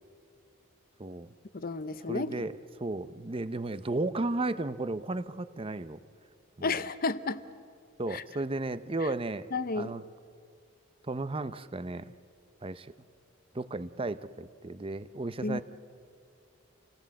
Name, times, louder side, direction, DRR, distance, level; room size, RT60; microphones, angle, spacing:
voice 1, 1.5-2.3 6.6-7.4 8.1-8.2 9.5-9.9 15.4-15.6, left 3 dB, 45° left, 14 dB, 0.8 m, -32 dB
voice 2, 2.1-6.0 6.6-6.7 8.0-9.5 9.8-10.0 11.0-12.1 12.6-12.9 13.5-15.6, right 2 dB, 25° right, 14 dB, 0.7 m, -34 dB
28.0 x 17.5 x 7.7 m, 2.3 s
head